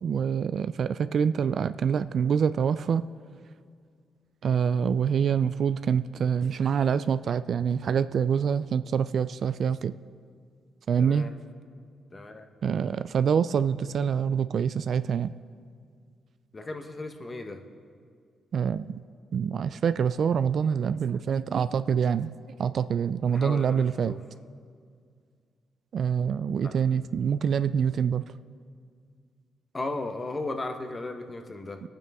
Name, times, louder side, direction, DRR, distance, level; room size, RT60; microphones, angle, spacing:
voice 1, 0.0-3.1 4.4-9.9 10.9-11.3 12.6-15.3 18.5-19.0 19.3-22.3 22.6-24.2 25.9-28.3, right 7 dB, 60° right, 13 dB, 0.3 m, -26 dB
voice 2, 11.0-11.3 12.1-12.5 16.5-17.6 23.3-24.2 26.6-26.7 29.7-31.8, left 2 dB, 25° left, 6 dB, 1.0 m, -36 dB
25.5 x 9.1 x 3.5 m, 2.2 s
cardioid pair, 110°, 0 cm